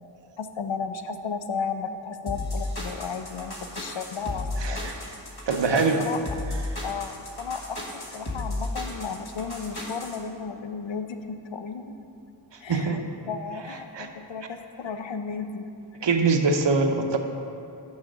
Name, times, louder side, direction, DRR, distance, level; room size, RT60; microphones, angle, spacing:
voice 1, 0.4-4.9 5.7-6.2 6.8-11.9 12.6-13.0 13.3-15.7, left 5 dB, 90° left, 8 dB, 0.6 m, -34 dB
sound 1, 2.3-10.2, left 2 dB, 60° left, 1.4 m, -33 dB
voice 2, 4.6-4.9 5.5-6.0 12.7-13.0 13.9-14.1 16.0-17.2, right 4 dB, 75° right, 5 dB, 0.7 m, -23 dB
6.3 x 5.7 x 6.0 m, 2.8 s
wide cardioid pair, 55°, 44 cm